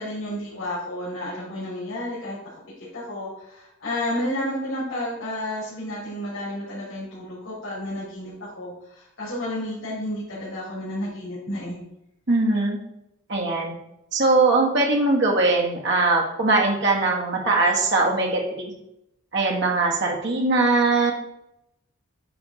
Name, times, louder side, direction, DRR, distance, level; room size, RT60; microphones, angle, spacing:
voice 1, 0.0-2.4 2.8-11.8, left 1 dB, 80° left, -8 dB, 3.1 m, -31 dB
voice 2, 12.3-12.8 13.3-13.7 14.1-18.7 19.3-21.1, right 3 dB, 60° right, -1 dB, 1.7 m, -21 dB
9.4 x 3.5 x 4.9 m, 0.84 s
head